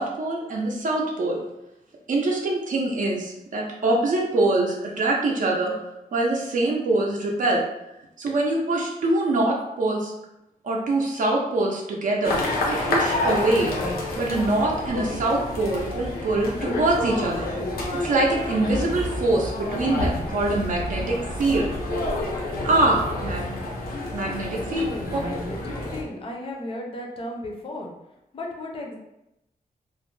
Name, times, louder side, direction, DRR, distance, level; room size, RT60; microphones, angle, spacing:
voice 1, 0.0-1.4 2.1-5.7 6.1-7.6 8.2-10.1 10.6-13.7 14.2-17.5 18.0-21.7 22.6-23.6 24.1-24.8, right 2 dB, 60° right, -1 dB, 0.4 m, -24 dB
sound 1, 12.2-26.0, left 1 dB, 85° left, 0.6 m, -29 dB
voice 2, 24.5-27.9 28.3-29.0, left 1 dB, 40° left, 0 dB, 0.5 m, -35 dB
2.4 x 2.0 x 3.1 m, 0.88 s
wide cardioid pair, 170°, 15 cm